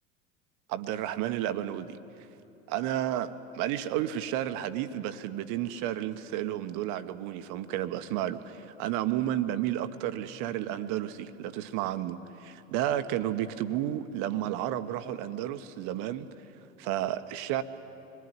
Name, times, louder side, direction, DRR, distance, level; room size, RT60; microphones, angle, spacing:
voice 1, 0.7-2.0 2.7-16.3 16.8-17.6, right 12 dB, 50° right, 11 dB, 1.4 m, -32 dB
26.0 x 21.5 x 9.9 m, 2.9 s
figure-of-eight pair, 75°, 40 cm